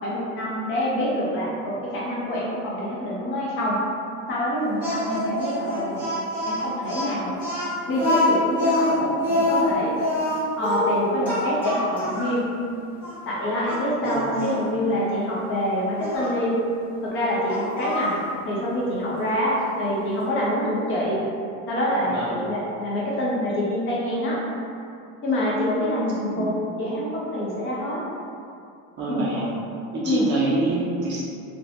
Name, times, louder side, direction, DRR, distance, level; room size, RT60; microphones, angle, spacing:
voice 1, 0.0-3.8 4.3-6.0 6.5-7.4 7.9-9.9 10.6-12.4 13.3-16.6 17.0-18.1 18.4-21.2 21.7-24.4 25.2-28.0 29.1-29.3 30.0-30.3, equal, 35° left, -6 dB, 0.6 m, -26 dB
Speech, 4.8-12.4 13.0-13.1 13.6-14.6 16.0-16.3 17.5-18.2, left 1 dB, 5° right, 0.9 m, -25 dB
voice 2, 29.0-29.5 29.9-31.2, right 2 dB, 35° right, -7 dB, 0.4 m, -26 dB
2.9 x 2.2 x 2.4 m, 2.5 s
cardioid pair, 165°, 34 cm